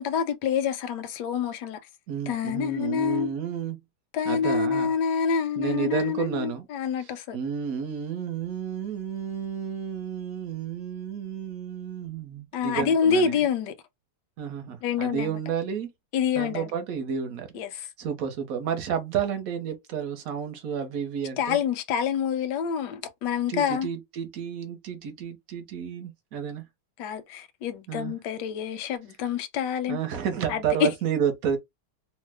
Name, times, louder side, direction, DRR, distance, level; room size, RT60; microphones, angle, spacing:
voice 1, 0.0-1.8 2.3-3.3 4.1-7.4 12.5-13.7 14.8-15.4 16.1-16.7 17.5-17.7 21.4-23.9 27.0-30.0 30.5-30.9, left 7 dB, 85° left, 1.2 m, -27 dB
voice 2, 2.1-3.8 4.2-4.9 5.6-6.7 7.0-13.4 14.4-15.9 16.4-21.6 23.5-26.6 27.9-28.1 29.9-31.6, right 8 dB, 60° right, 1.0 m, -31 dB
3.0 x 2.0 x 3.3 m
omnidirectional pair, 1.8 m